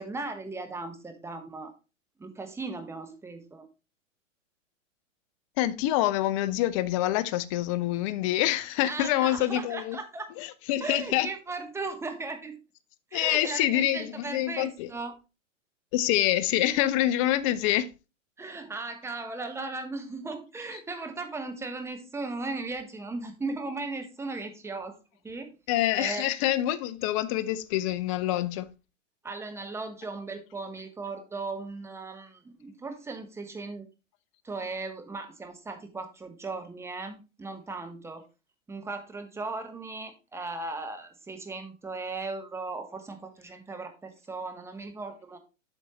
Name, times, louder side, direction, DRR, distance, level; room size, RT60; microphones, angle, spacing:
voice 1, 0.0-1.7 2.2-3.7 8.9-10.3 10.8-12.6 13.1-15.1 18.4-25.0 25.2-25.5 26.0-26.3 29.2-33.9 34.4-38.2 38.7-45.4, right 3 dB, 5° right, 1.0 m, -37 dB
voice 2, 5.6-10.0 10.4-11.3 13.1-14.9 15.9-17.9 25.7-28.7, left 14 dB, 30° left, 0.4 m, -26 dB
8.4 x 6.2 x 3.0 m
hypercardioid pair, 125°, 38 cm